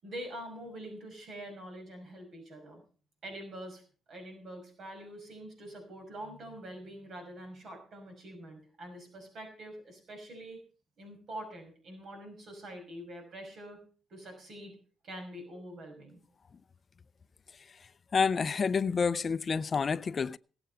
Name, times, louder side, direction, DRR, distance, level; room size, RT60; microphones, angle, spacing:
voice 1, 0.0-2.8 3.2-3.8 4.1-10.6 11.0-13.8 14.1-14.7 15.0-16.2, right 1 dB, 60° right, 5.7 m, -45 dB
voice 2, 18.1-20.4, left 5 dB, 40° left, 0.5 m, -28 dB
17.5 x 7.9 x 5.6 m
cardioid pair, 90°, 0 cm